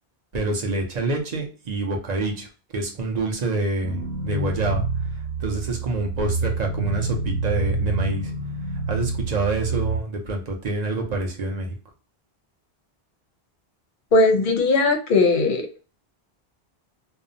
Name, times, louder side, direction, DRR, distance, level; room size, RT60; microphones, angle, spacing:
voice 1, 0.3-2.5 2.7-4.9 5.1-8.3 8.9-11.7, right 2 dB, 45° right, 2 dB, 0.7 m, -27 dB
sound 1, 3.8-10.0, right 3 dB, 80° right, 0.8 m, -27 dB
voice 2, 14.1-15.7, left 3 dB, 60° left, 4 dB, 0.6 m, -18 dB
2.6 x 2.1 x 2.5 m, 0.36 s
omnidirectional pair, 1.1 m